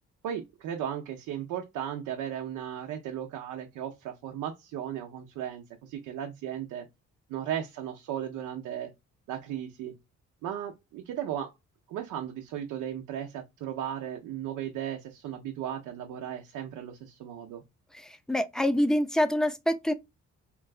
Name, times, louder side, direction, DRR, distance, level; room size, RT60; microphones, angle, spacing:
voice 1, 0.2-6.9 7.3-8.9 9.3-9.9 10.4-11.5 11.9-17.6, right 10 dB, 90° right, 0.6 m, -36 dB
voice 2, 17.9-19.9, left 1 dB, ahead, 0.4 m, -26 dB
3.8 x 2.3 x 2.3 m
cardioid pair, 90°, 30 cm